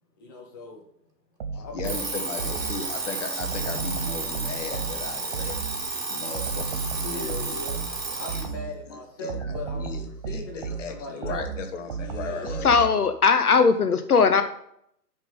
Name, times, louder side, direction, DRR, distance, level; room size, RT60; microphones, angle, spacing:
voice 1, 0.2-0.9 1.5-2.7 7.1-11.5 12.0-12.8, left 2 dB, 15° left, 0 dB, 0.5 m, -40 dB
sound 1, 1.4-2.9 3.4-5.9 6.3-8.8 9.3-13.1, right 5 dB, 25° right, 0.7 m, -34 dB
voice 2, 1.5-5.6 6.1-7.6 8.9-12.9, left 5 dB, 45° left, 6 dB, 1.5 m, -37 dB
Alarm, 1.8-8.5, right 3 dB, 80° right, 2.7 m, -32 dB
voice 3, 12.6-14.4, left 5 dB, 65° left, 9 dB, 0.9 m, -19 dB
9.9 x 5.3 x 5.3 m, 0.71 s
figure-of-eight pair, 125°, 49 cm